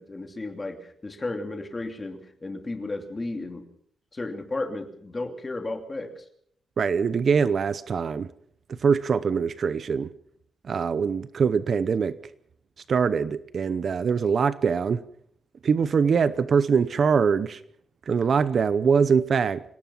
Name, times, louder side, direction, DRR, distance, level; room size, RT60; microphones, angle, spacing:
voice 1, 0.0-3.6 4.1-6.2, left 2 dB, 20° left, 2.8 m, -34 dB
voice 2, 6.8-8.3 8.7-10.1 10.6-12.2 12.9-15.0 15.6-17.6 18.1-19.6, right 6 dB, 45° right, 0.8 m, -23 dB
26.0 x 18.0 x 5.7 m
wide cardioid pair, 160°, 0 cm